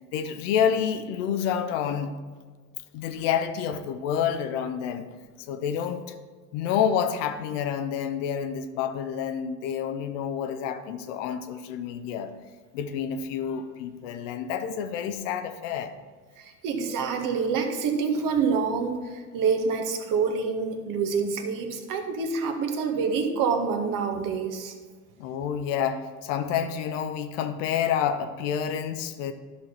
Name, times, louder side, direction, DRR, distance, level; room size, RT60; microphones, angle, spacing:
voice 1, 0.1-2.1 2.9-5.1 5.5-6.1 6.5-12.3 12.7-15.9 25.2-29.3, left 8 dB, 55° left, 9 dB, 0.8 m, -28 dB
voice 2, 16.4-24.7, right 5 dB, 45° right, 6 dB, 1.3 m, -27 dB
12.5 x 6.2 x 4.3 m, 1.5 s
figure-of-eight pair, 65°, 46 cm